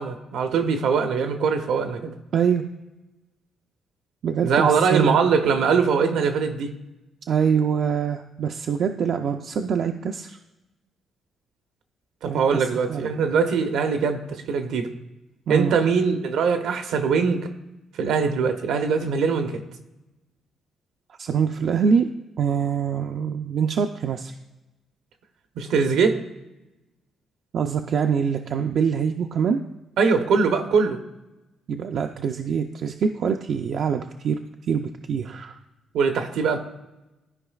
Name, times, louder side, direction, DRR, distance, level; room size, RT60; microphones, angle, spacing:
voice 1, 0.0-2.1 4.4-6.7 12.2-14.9 15.5-17.5 18.0-19.6 25.6-26.2 30.0-31.0 35.9-36.6, right 5 dB, 80° right, 7 dB, 0.8 m, -22 dB
voice 2, 2.3-2.6 4.2-5.3 7.3-10.4 12.3-13.0 15.5-15.7 21.2-22.1 22.4-24.3 27.5-29.6 31.7-34.4 34.7-35.6, right 7 dB, 65° right, 4 dB, 0.4 m, -24 dB
13.5 x 4.9 x 2.4 m, 1.0 s
cardioid pair, 90°, 0 cm